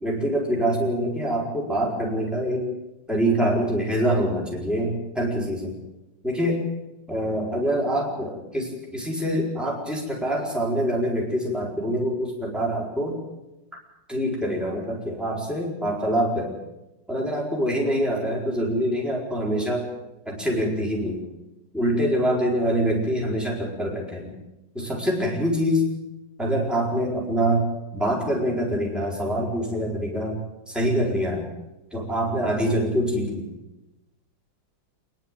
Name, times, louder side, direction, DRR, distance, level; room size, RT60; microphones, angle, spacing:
voice 1, 0.0-2.7 3.1-5.8 6.2-6.6 7.1-13.2 14.1-16.6 17.1-19.9 20.3-21.2 21.7-24.3 24.7-25.9 26.4-30.4 30.7-31.5 31.9-33.5, equal, ahead, -2 dB, 4.4 m, -25 dB
27.0 x 11.0 x 8.9 m, 1.0 s
omnidirectional pair, 2.0 m